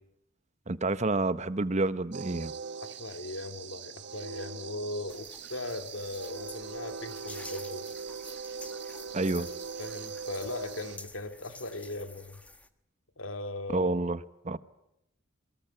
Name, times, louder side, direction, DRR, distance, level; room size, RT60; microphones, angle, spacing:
voice 1, 0.7-2.5 9.1-9.5 13.7-14.2 14.4-14.6, right 2 dB, 35° right, 1.0 m, -28 dB
sound 1, 2.1-11.0, right 5 dB, 60° right, 1.5 m, -41 dB
voice 2, 3.0-7.9 9.4-9.5 9.8-12.4 13.2-14.1, left 2 dB, 85° left, 2.6 m, -38 dB
sound 2, 5.1-12.7, left 2 dB, 5° left, 1.4 m, -50 dB
28.0 x 23.0 x 7.9 m
head